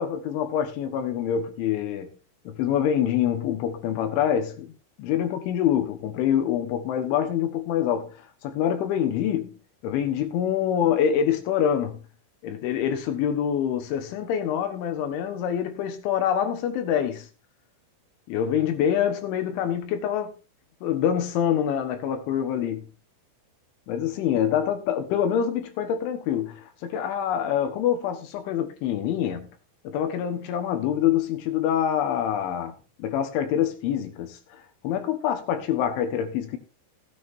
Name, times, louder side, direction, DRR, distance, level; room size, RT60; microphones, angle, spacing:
voice 1, 0.0-2.1 2.5-4.7 5.0-9.6 9.8-12.0 12.4-17.3 18.3-20.4 20.8-22.9 23.9-29.5 29.9-36.6, left 9 dB, 75° left, 3.5 m, -26 dB
16.5 x 9.3 x 2.7 m
omnidirectional pair, 5.8 m